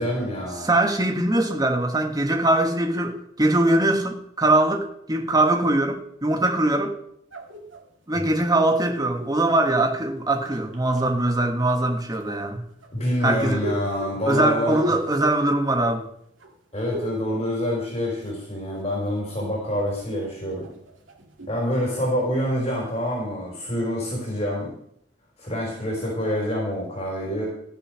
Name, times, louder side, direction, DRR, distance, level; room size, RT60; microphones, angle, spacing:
voice 1, 0.0-0.7 12.9-14.8 16.7-20.7 21.5-24.7 25.4-27.5, equal, 30° left, 4.2 m, -26 dB
voice 2, 0.6-7.0 8.1-12.6 13.2-13.6 14.3-16.1, right 1 dB, 20° right, 1.4 m, -22 dB
sound 1, 7.3-9.5 10.2-11.0 12.1-16.1 16.4-17.3 17.5-18.4 18.8-22.0, equal, 85° right, 2.0 m, -38 dB
14.5 x 6.9 x 6.3 m
head